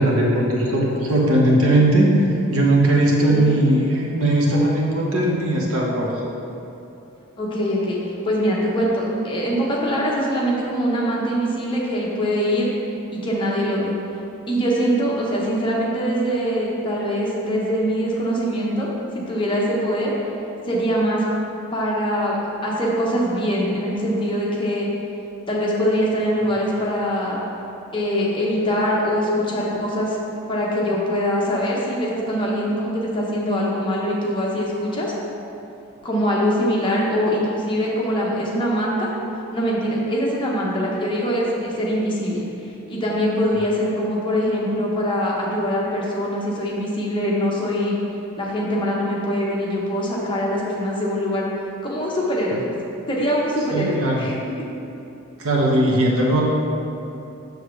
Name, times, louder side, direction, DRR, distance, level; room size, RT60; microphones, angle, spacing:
voice 1, 0.0-2.1 2.5-6.1 52.5-52.6 53.7-54.3 55.4-56.4, right 1 dB, 75° right, -3 dB, 1.2 m, -18 dB
voice 2, 7.4-8.0 8.2-12.7 13.1-13.9 14.5-20.1 20.7-21.2 21.7-24.9 25.5-27.4 27.9-30.2 30.5-35.1 36.0-39.1 39.5-42.5 42.9-48.0 48.4-51.5 51.8-52.7 53.1-54.7, equal, 20° left, -5 dB, 1.0 m, -23 dB
6.7 x 6.5 x 3.2 m, 2.9 s
head